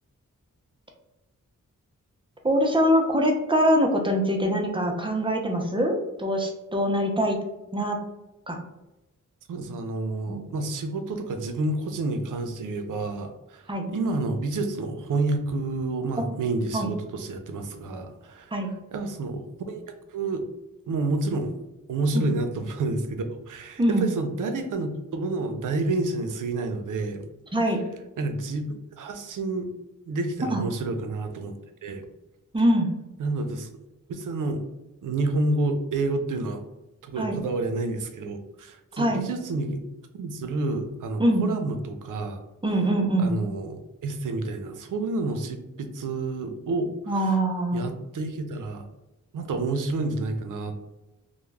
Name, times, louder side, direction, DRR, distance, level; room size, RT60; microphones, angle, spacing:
voice 1, 2.4-7.4 7.7-8.0 8.5-8.6 10.3-10.4 13.7-13.8 16.7-16.9 18.5-18.7 22.1-22.3 23.8-24.1 27.5-27.8 30.5-30.6 32.5-32.9 37.2-37.4 39.0-39.2 41.2-41.5 42.6-43.3 47.1-47.8, equal, 15° right, 2 dB, 0.4 m, -23 dB
voice 2, 9.5-18.6 18.9-20.4 20.9-21.6 21.9-27.3 27.7-27.8 28.2-28.6 29.0-29.7 30.1-31.5 31.8-32.0 33.2-33.7 34.1-34.6 35.0-36.6 37.0-39.8 40.1-42.4 43.2-47.3 47.7-48.9 49.3-50.7, right 2 dB, 75° right, 6 dB, 0.5 m, -29 dB
2.2 x 2.0 x 3.1 m, 0.97 s
wide cardioid pair, 95°, 32 cm